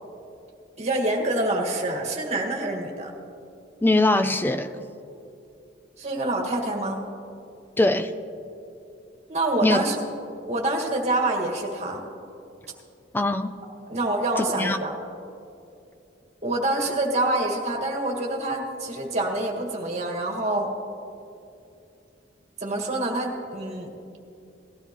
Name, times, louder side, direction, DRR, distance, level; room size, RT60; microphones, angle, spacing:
voice 1, 0.8-3.1 6.0-7.0 9.3-10.0 10.5-12.0 13.9-14.9 16.4-20.7 22.6-23.9, right 2 dB, 40° right, 1 dB, 1.8 m, -26 dB
voice 2, 3.8-4.7 7.8-8.1 9.6-9.8 13.1-13.5 14.6-14.8, left 2 dB, 10° left, 10 dB, 0.4 m, -21 dB
19.0 x 13.5 x 3.0 m, 2.6 s
head